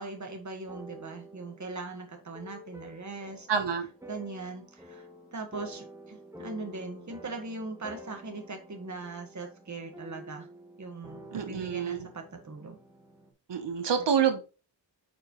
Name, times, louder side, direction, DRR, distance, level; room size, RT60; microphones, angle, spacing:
voice 1, 0.0-3.5 4.1-5.0 5.3-10.5 10.8-12.8, right 3 dB, 40° right, 1.5 m, -40 dB
sound 1, 0.6-13.3, equal, 5° right, 1.1 m, -49 dB
voice 2, 3.5-3.9 11.3-12.1 13.5-14.4, right 7 dB, 65° right, 1.1 m, -27 dB
8.8 x 4.9 x 3.1 m
wide cardioid pair, 180°, 46 cm